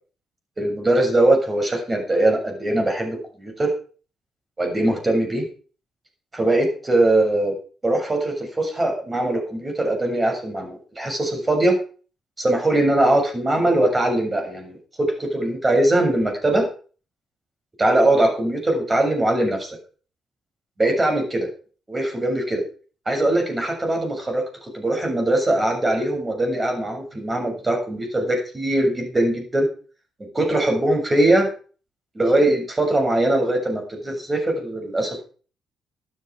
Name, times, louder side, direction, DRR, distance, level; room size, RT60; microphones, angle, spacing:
voice 1, 0.6-3.7 4.6-5.4 6.3-7.5 7.8-11.8 12.4-16.7 17.8-19.8 20.8-21.5 21.9-22.6 23.1-29.7 30.3-31.5 32.2-35.2, right 1 dB, 20° right, 3 dB, 7.0 m, -21 dB
13.5 x 12.0 x 4.9 m, 0.39 s
cardioid pair, 90°, 0 cm